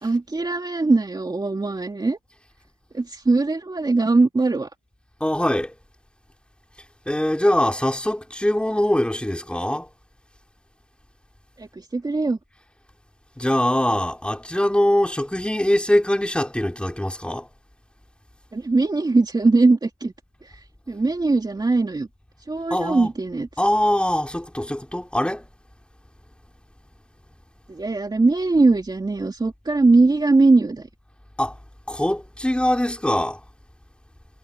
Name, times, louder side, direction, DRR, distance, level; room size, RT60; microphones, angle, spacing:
voice 1, 0.0-2.2 2.9-4.7 11.6-12.4 18.5-20.1 20.9-22.1 22.5-23.5 27.7-30.9, right 3 dB, 20° right, 2.6 m, -20 dB
voice 2, 5.2-5.7 7.1-9.9 13.4-17.5 22.7-23.1 23.6-25.5 31.4-31.5 31.9-33.4, left 1 dB, 5° left, 4.2 m, -22 dB
cardioid pair, 90°, 20 cm